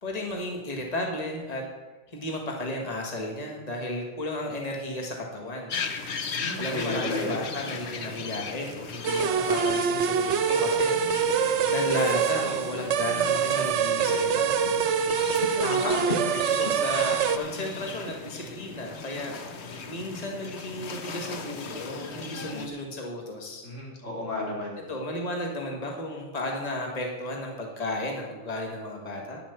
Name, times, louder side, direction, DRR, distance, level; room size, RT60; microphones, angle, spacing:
voice 1, 0.0-1.6 2.1-5.8 6.6-14.6 15.6-19.5 19.9-23.6 24.9-29.4, left 1 dB, 30° left, 1 dB, 1.7 m, -34 dB
sound 1, 5.7-22.7, left 5 dB, 60° left, 1.2 m, -37 dB
voice 2, 6.3-7.4 23.6-24.7, left 1 dB, 80° left, -3 dB, 3.4 m, -32 dB
sound 2, 9.0-17.4, right 7 dB, 70° right, 1.0 m, -25 dB
10.5 x 7.2 x 7.0 m, 1.2 s
omnidirectional pair, 1.3 m